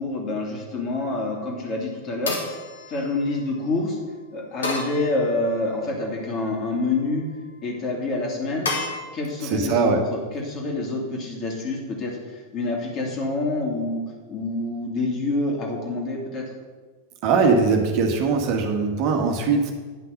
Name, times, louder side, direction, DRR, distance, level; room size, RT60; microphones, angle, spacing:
voice 1, 0.0-2.4 2.9-4.0 4.3-7.2 7.6-8.7 9.1-14.0 14.3-16.4, left 2 dB, 30° left, 0 dB, 2.4 m, -27 dB
sound 1, 0.9-1.4 2.3-3.6 4.6-5.7 6.3-6.9 8.6-8.9, left 3 dB, 70° left, 1.9 m, -32 dB
voice 2, 9.4-10.0 17.2-19.7, right 4 dB, 45° right, 2 dB, 1.3 m, -21 dB
9.8 x 5.9 x 6.5 m, 1.4 s
figure-of-eight pair, 90°, 0 cm